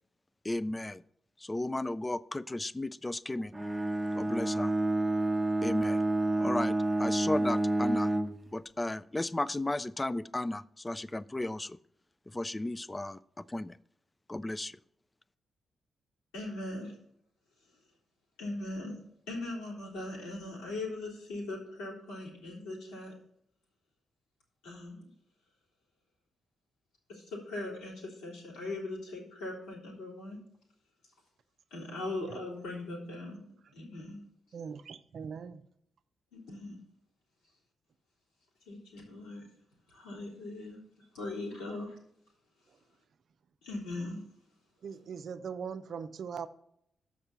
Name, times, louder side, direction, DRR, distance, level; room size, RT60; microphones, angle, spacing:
voice 1, 0.4-1.0 1.4-3.5 4.1-4.7 5.6-6.0 6.4-8.1 8.5-11.8 12.3-13.8 14.3-14.8, left 2 dB, 20° left, 0.4 m, -34 dB
Bowed string instrument, 3.5-8.4, right 2 dB, 20° right, 0.7 m, -29 dB
voice 2, 16.3-16.9 18.4-23.1 24.6-25.1 27.1-30.4 31.7-33.4 33.7-34.2 36.3-36.8 38.7-39.5 39.9-42.0 43.6-44.2, left 2 dB, 85° left, 3.1 m, -40 dB
voice 3, 34.5-35.6 44.8-46.5, right 6 dB, 65° right, 0.6 m, -40 dB
6.7 x 5.3 x 7.2 m
hypercardioid pair, 40°, 0 cm